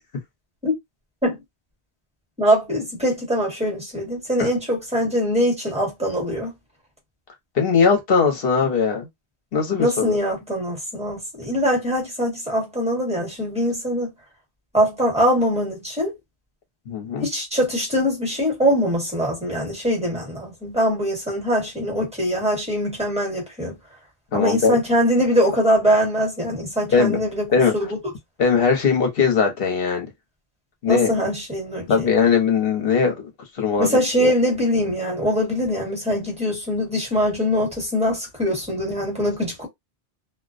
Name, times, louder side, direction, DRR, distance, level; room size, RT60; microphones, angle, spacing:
voice 1, 2.4-6.5 9.8-14.1 14.7-16.1 17.2-23.7 24.3-27.4 27.7-28.0 30.9-32.1 33.8-39.7, equal, 5° right, 1.2 m, -22 dB
voice 2, 7.5-9.1 9.5-10.2 16.9-17.3 24.3-24.8 26.9-27.2 27.5-27.7 28.4-30.1 30.8-31.1 31.9-33.3 33.6-34.3, left 5 dB, 65° left, 1.0 m, -20 dB
2.3 x 2.1 x 2.4 m
omnidirectional pair, 1.1 m